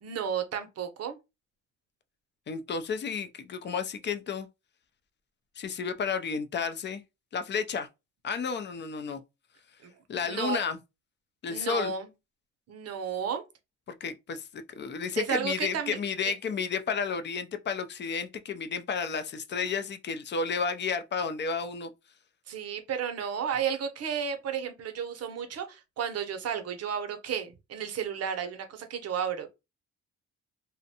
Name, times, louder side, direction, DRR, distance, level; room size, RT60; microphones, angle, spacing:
voice 1, 0.0-1.2 9.8-9.9 10.2-10.6 11.5-12.1 12.7-13.4 15.2-16.0 16.2-16.3 22.5-29.5, right 7 dB, 55° right, 0.6 m, -32 dB
voice 2, 2.5-4.5 5.6-7.0 7.3-7.9 8.2-9.2 10.1-10.8 11.4-11.9 14.0-21.9, left 5 dB, 35° left, 0.4 m, -32 dB
2.5 x 2.1 x 2.7 m
cardioid pair, 90°, 30 cm